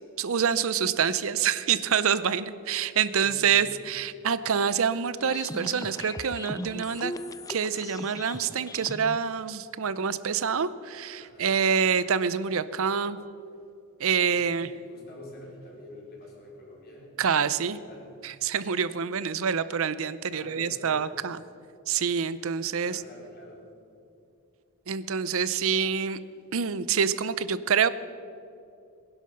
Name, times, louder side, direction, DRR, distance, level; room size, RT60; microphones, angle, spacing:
voice 1, 0.2-7.1 7.5-13.2 14.0-14.7 17.2-17.8 18.2-21.4 21.9-23.0 24.9-26.2 26.5-27.9, right 7 dB, 70° right, 15 dB, 0.6 m, -26 dB
voice 2, 3.2-3.8 11.2-11.9 14.2-18.1 20.3-21.1 22.7-23.7, left 1 dB, 45° left, -3 dB, 4.6 m, -47 dB
sound 1, 5.2-9.2, left 2 dB, 15° left, 0.4 m, -39 dB
19.5 x 11.0 x 6.5 m, 2.6 s
head